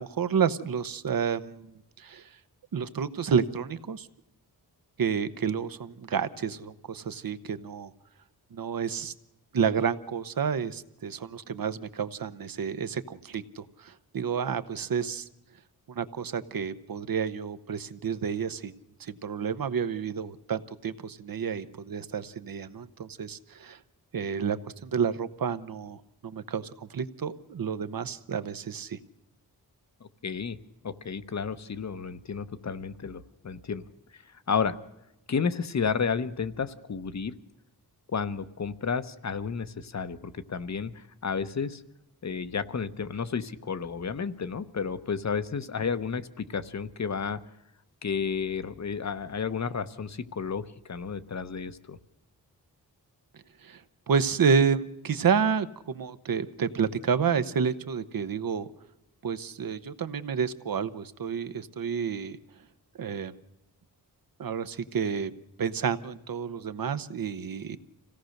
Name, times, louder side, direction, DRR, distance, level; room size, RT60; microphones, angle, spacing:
voice 1, 0.0-1.7 2.0-2.3 2.7-4.1 5.0-7.9 8.5-9.1 9.5-15.3 15.9-18.7 19.0-23.8 24.1-29.0 53.6-53.8 54.1-58.7 59.2-62.4 63.0-63.4 64.4-65.3 65.6-67.8, right 6 dB, 60° right, 13 dB, 0.9 m, -30 dB
voice 2, 30.0-30.6 30.8-33.8 34.1-34.2 34.5-34.8 35.3-37.3 38.1-41.8 42.2-47.4 48.0-52.0, left 6 dB, 45° left, 12 dB, 0.9 m, -32 dB
26.5 x 17.0 x 6.5 m, 0.90 s
wide cardioid pair, 170°, 39 cm